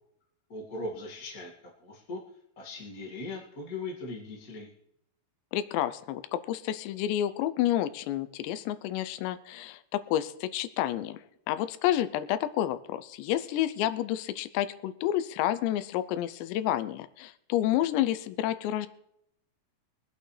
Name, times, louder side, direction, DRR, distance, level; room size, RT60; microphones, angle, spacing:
voice 1, 0.5-1.5 1.8-2.2 2.5-4.7, left 2 dB, 35° left, -2 dB, 1.4 m, -39 dB
voice 2, 5.5-18.9, left 12 dB, 90° left, 12 dB, 2.9 m, -30 dB
23.5 x 8.6 x 3.3 m, 0.76 s
omnidirectional pair, 4.9 m